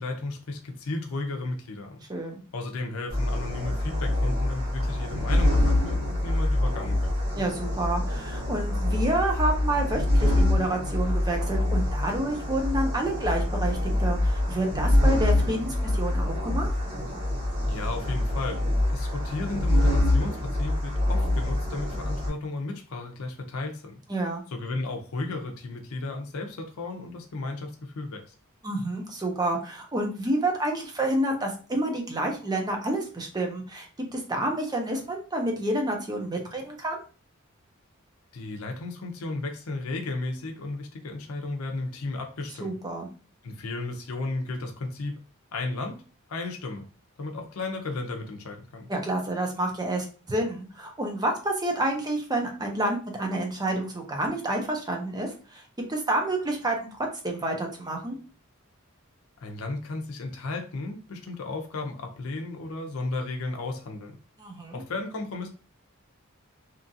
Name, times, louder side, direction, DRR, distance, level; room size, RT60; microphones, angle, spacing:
voice 1, 0.0-2.0 2.5-7.1 17.7-18.6 18.9-24.0 24.5-28.2 38.3-42.7 43.4-45.2 45.5-46.0 46.3-46.8 47.2-48.9 59.4-64.2 64.7-65.5, left 2 dB, 90° left, 3 dB, 0.5 m, -34 dB
voice 2, 2.1-2.4 7.4-16.7 24.1-24.4 28.6-37.0 42.6-43.1 48.9-55.6 55.9-56.9 57.2-58.2 64.4-64.8, right 1 dB, 20° right, 2 dB, 0.6 m, -29 dB
sound 1, 3.1-22.3, left 1 dB, 60° right, 1.4 m, -25 dB
2.9 x 2.4 x 2.6 m, 0.37 s
head